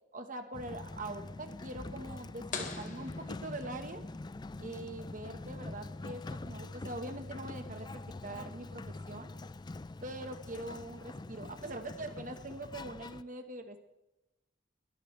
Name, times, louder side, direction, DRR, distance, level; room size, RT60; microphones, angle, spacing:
voice 1, 0.1-4.0 4.6-9.3 10.0-13.8, right 1 dB, 45° right, 6 dB, 1.4 m, -43 dB
Sliding door, 0.5-13.2, left 2 dB, 25° left, 0.4 m, -44 dB
sound 1, 2.5-4.2, left 5 dB, 45° left, 2.1 m, -43 dB
22.0 x 13.5 x 3.4 m, 0.93 s
head